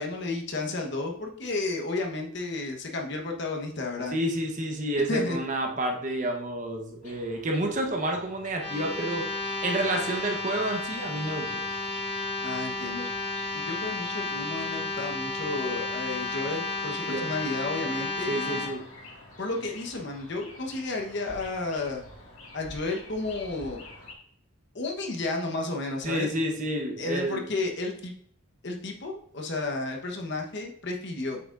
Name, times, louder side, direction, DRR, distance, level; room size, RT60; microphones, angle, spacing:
voice 1, 0.0-4.1 5.1-5.4 12.4-13.1 13.5-18.6 19.4-22.0 22.5-23.9 24.7-26.3 27.0-28.1 28.6-31.4, left 2 dB, 55° left, 1 dB, 1.1 m, -32 dB
voice 2, 4.1-9.2 9.6-11.6 17.1-17.3 18.3-18.8 26.0-27.4, right 1 dB, 35° right, 2 dB, 1.0 m, -29 dB
sound 1, 7.0-24.1, left 2 dB, 90° left, 2.0 m, -48 dB
sound 2, 8.6-18.7, left 3 dB, 25° left, 2.3 m, -32 dB
7.7 x 5.9 x 2.5 m, 0.63 s
head